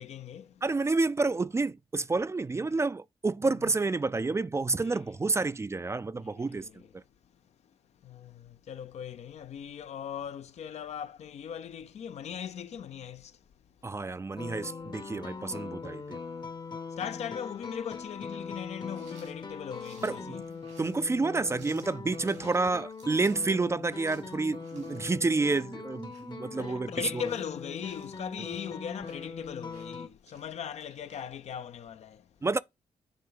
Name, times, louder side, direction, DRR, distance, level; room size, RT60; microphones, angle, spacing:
voice 1, 0.0-0.6 3.6-3.7 4.8-5.0 6.2-6.9 8.0-13.4 13.8-13.9 16.4-16.5 16.9-20.7 26.5-32.3, left 8 dB, 65° left, 0.5 m, -39 dB
voice 2, 0.6-6.7 6.9-7.0 13.8-16.2 20.0-20.4 20.8-26.9 27.1-27.2 32.4-32.6, right 3 dB, 25° right, 0.3 m, -29 dB
sound 1, 14.4-30.1, left 4 dB, 40° left, 0.8 m, -42 dB
sound 2, 18.8-31.4, right 4 dB, 90° right, 3.4 m, -59 dB
9.5 x 3.2 x 3.9 m
supercardioid pair, 40°, 12 cm